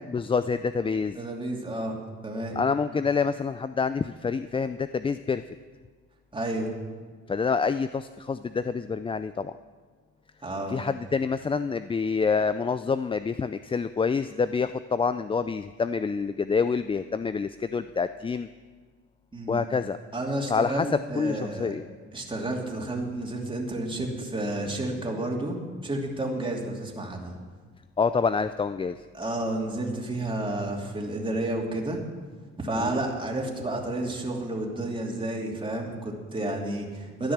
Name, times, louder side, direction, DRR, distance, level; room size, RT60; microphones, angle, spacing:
voice 1, 0.1-1.2 2.6-5.4 7.3-9.5 10.7-18.5 19.5-20.0 20.5-21.8 28.0-29.0 32.8-33.0, left 5 dB, 20° left, 12 dB, 0.3 m, -27 dB
voice 2, 1.1-2.0 2.2-2.6 6.3-6.7 10.4-10.8 19.3-19.6 20.1-21.8 22.1-25.6 25.8-27.3 29.1-32.0 32.6-37.3, right 1 dB, 15° right, -1 dB, 2.9 m, -31 dB
13.0 x 10.5 x 7.3 m, 1.5 s
cardioid pair, 90°, 30 cm